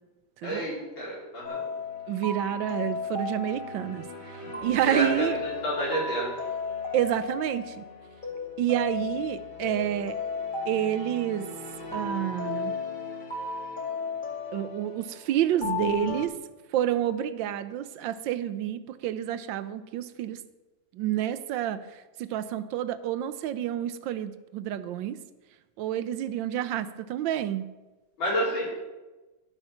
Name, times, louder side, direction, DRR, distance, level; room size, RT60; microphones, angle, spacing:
voice 1, 0.4-1.6 4.8-6.3 28.2-28.6, equal, 90° left, -6 dB, 5.1 m, -29 dB
sound 1, 1.4-16.3, left 4 dB, 25° left, 1.8 m, -35 dB
voice 2, 2.1-5.4 6.9-7.8 8.6-10.2 10.7-11.5 11.9-12.7 14.5-16.4 16.7-20.4 20.9-25.2 25.8-27.7, right 11 dB, 80° right, 13 dB, 1.3 m, -29 dB
12.0 x 8.1 x 5.8 m, 1.2 s
omnidirectional pair, 2.1 m